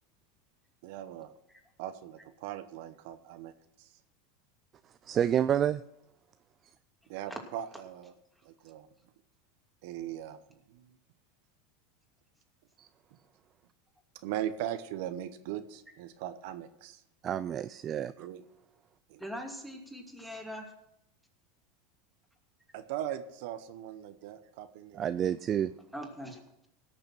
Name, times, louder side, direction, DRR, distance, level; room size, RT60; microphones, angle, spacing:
voice 1, 0.8-1.3 1.8-3.5 3.8-3.9 7.1-8.1 8.4-8.9 9.8-10.4 10.7-10.9 14.2-17.0 18.2-18.4 19.1-19.2 22.7-25.0, right 11 dB, 70° right, 10 dB, 0.9 m, -39 dB
voice 2, 5.0-5.8 12.8-12.9 17.2-18.3 24.9-25.7, right 9 dB, 35° right, 13 dB, 0.4 m, -29 dB
voice 3, 19.2-20.7 25.9-26.4, equal, ahead, 0 dB, 2.6 m, -41 dB
17.5 x 6.7 x 6.1 m, 0.81 s
supercardioid pair, 115°, 0 cm